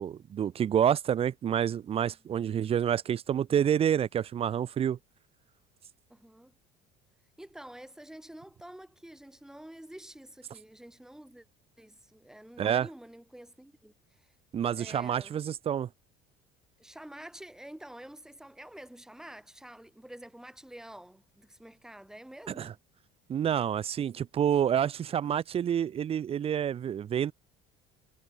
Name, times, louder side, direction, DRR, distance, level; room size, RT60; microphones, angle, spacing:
voice 1, 0.0-5.0 12.6-12.9 14.5-15.9 22.6-22.7 23.3-27.3, right 9 dB, 30° right, 0.4 m, -28 dB
voice 2, 6.1-6.5 7.4-11.5 11.8-14.3 14.7-15.5 16.8-22.8 25.2-25.4, right 1 dB, 5° right, 1.1 m, -48 dB
cardioid pair, 125°, 20 cm